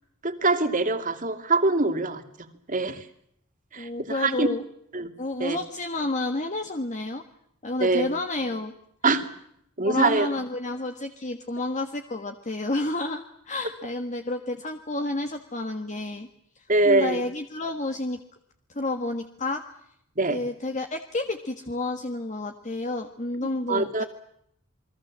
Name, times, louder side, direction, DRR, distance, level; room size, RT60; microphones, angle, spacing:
voice 1, 0.2-2.2 2.7-3.0 3.7-4.5 4.9-5.1 5.4-5.6 7.8-8.1 9.0-9.3 9.8-10.3 16.7-17.2 20.2-20.4 23.7-24.0, right 3 dB, 40° right, 8 dB, 2.6 m, -23 dB
voice 2, 3.8-4.6 5.2-7.2 7.6-8.7 9.8-16.3 16.5-18.2 18.7-19.6 20.3-24.0, left 2 dB, 35° left, 5 dB, 1.6 m, -30 dB
29.0 x 21.5 x 7.5 m, 0.72 s
head